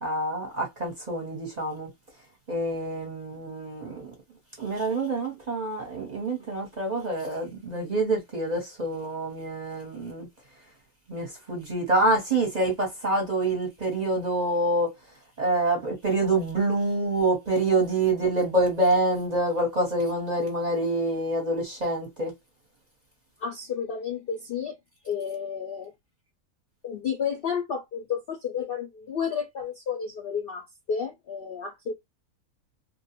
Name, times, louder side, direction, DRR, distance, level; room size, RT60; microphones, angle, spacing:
voice 1, 0.0-1.9 2.5-4.1 4.6-10.3 11.1-14.9 15.4-22.3, right 2 dB, 35° right, 0.8 m, -26 dB
voice 2, 23.4-24.8 25.0-25.9 26.8-31.9, left 7 dB, 60° left, 0.6 m, -31 dB
2.4 x 2.1 x 2.8 m
omnidirectional pair, 1.6 m